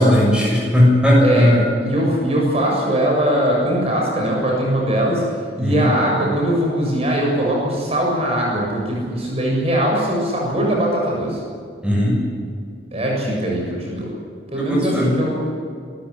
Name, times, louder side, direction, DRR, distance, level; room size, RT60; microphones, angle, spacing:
voice 1, 0.0-1.7 5.6-5.9 11.8-12.2 14.6-15.1, equal, 5° right, -3 dB, 6.8 m, -16 dB
voice 2, 1.2-1.5 1.8-5.2 5.6-11.4 12.9-14.1 14.5-15.5, right 1 dB, 35° right, -2 dB, 7.2 m, -21 dB
27.0 x 14.5 x 9.9 m, 2.2 s
head